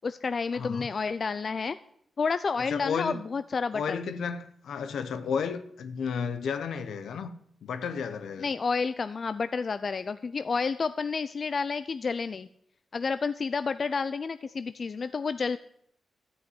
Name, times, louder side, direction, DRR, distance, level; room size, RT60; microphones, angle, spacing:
voice 1, 0.0-1.8 2.2-4.0 8.4-12.5 12.9-15.6, left 5 dB, 50° left, 12 dB, 0.5 m, -30 dB
voice 2, 0.5-0.9 2.6-3.2 3.7-7.3 7.6-8.5, left 6 dB, 80° left, 10 dB, 1.1 m, -32 dB
13.0 x 5.7 x 9.5 m, 0.68 s
cardioid pair, 60°, 0 cm